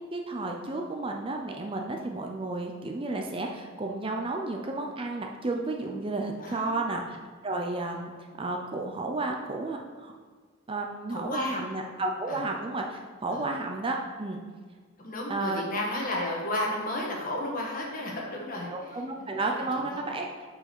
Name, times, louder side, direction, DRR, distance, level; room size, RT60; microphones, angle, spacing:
voice 1, 0.1-7.2 7.4-8.1 8.4-10.1 10.7-14.4 15.3-15.6 18.7-20.3, right 2 dB, 25° right, 2 dB, 0.5 m, -32 dB
voice 2, 6.4-6.8 11.1-11.6 12.3-12.4 13.3-13.4 15.0-19.4 19.7-20.0, left 1 dB, 40° left, -2 dB, 1.5 m, -33 dB
6.3 x 4.9 x 6.0 m, 1.5 s
head